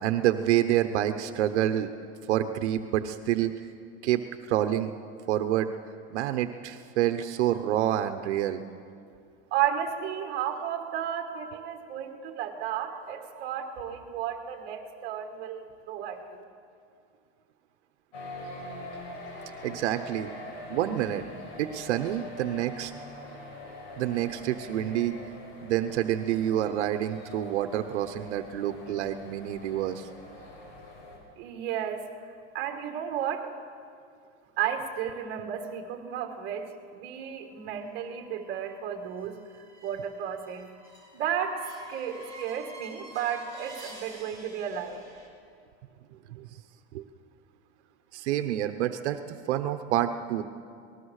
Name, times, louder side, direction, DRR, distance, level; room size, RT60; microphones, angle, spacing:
voice 1, 0.0-1.9 2.3-3.5 4.0-4.9 5.3-5.7 6.1-8.6 19.6-20.3 20.7-21.2 21.6-22.9 24.0-25.2 25.6-30.1 46.3-46.5 46.9-47.0 48.1-49.2 49.5-50.4, right 12 dB, 75° right, 8 dB, 1.1 m, -27 dB
voice 2, 9.5-16.4 31.4-32.0 32.5-33.5 34.6-39.4 39.8-40.6 41.1-41.6 41.9-45.0, right 9 dB, 30° right, 4 dB, 2.0 m, -33 dB
sound 1, 18.1-31.2, left 2 dB, 75° left, 7.5 m, -44 dB
sound 2, 37.6-45.3, right 1 dB, 10° left, 3.3 m, -49 dB
26.0 x 19.5 x 6.6 m, 2.3 s
supercardioid pair, 180°, 34 cm